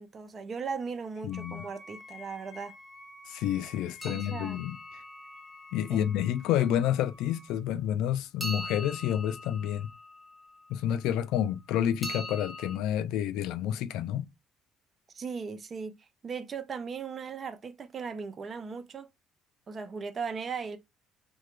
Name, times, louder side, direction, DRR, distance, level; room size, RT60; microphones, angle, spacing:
voice 1, 0.0-2.7 4.1-4.6 5.9-6.0 15.1-15.9 16.2-19.1 19.7-20.8, right 5 dB, 35° right, 0.5 m, -37 dB
voice 2, 1.2-1.7 3.3-4.8 5.7-9.9 10.7-14.3, left 10 dB, 80° left, 0.3 m, -29 dB
Wind instrument woodwind instrument, 1.3-7.6, left 2 dB, 25° left, 0.8 m, -50 dB
sound 1, 4.0-6.1 8.4-10.8 12.0-12.8, left 1 dB, 10° left, 1.1 m, -41 dB
2.8 x 2.2 x 3.1 m
cardioid pair, 95°, 0 cm